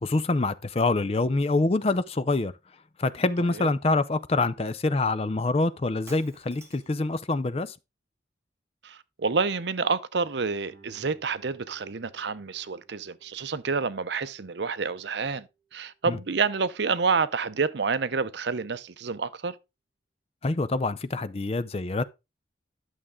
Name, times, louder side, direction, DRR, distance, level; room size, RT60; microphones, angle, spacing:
voice 1, 0.0-2.5 3.0-7.7 16.1-16.2 20.4-22.0, left 2 dB, 35° left, 0.5 m, -26 dB
Shatter, 6.1-7.0, right 2 dB, 15° right, 2.1 m, -50 dB
voice 2, 8.8-15.5 15.7-19.6, right 5 dB, 70° right, 0.7 m, -28 dB
Guitar, 10.7-16.0, right 4 dB, 40° right, 6.9 m, -60 dB
11.0 x 6.5 x 3.6 m
head